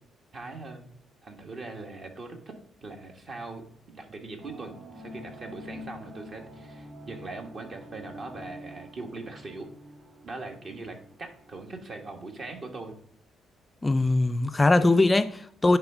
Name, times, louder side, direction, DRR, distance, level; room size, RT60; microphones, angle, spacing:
voice 1, 0.3-0.9 1.2-9.7 10.2-12.9, right 3 dB, 50° right, 1.6 m, -41 dB
sound 1, 4.4-11.8, left 1 dB, 30° right, 2.8 m, -47 dB
voice 2, 13.8-15.8, left 2 dB, 20° left, 0.4 m, -21 dB
9.7 x 3.5 x 4.9 m
cardioid pair, 90°, 0 cm